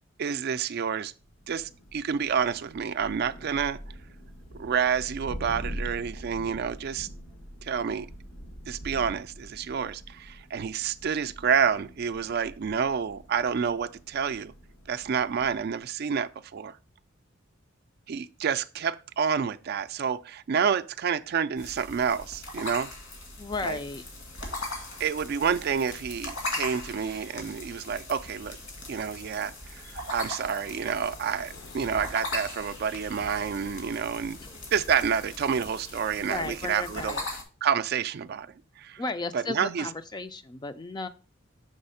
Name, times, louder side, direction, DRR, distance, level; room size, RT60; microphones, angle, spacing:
voice 1, 0.2-1.1 1.5-3.8 4.5-7.1 7.6-8.1 8.7-14.5 14.9-16.8 18.1-22.9 23.6-23.8 25.0-28.6 28.9-34.4 34.7-37.2 37.6-38.5 38.8-39.0 39.3-39.9, right 7 dB, 50° right, 0.4 m, -29 dB
Thunder, 1.2-15.8, equal, 90° left, 1.3 m, -44 dB
sound 1, 21.6-37.4, left 2 dB, 75° left, 1.9 m, -39 dB
voice 2, 23.4-24.0 34.4-34.7 36.3-37.3 39.0-41.1, left 3 dB, 20° left, 0.4 m, -35 dB
sound 2, 30.6-36.8, left 2 dB, 55° left, 0.6 m, -52 dB
6.5 x 3.4 x 5.5 m
head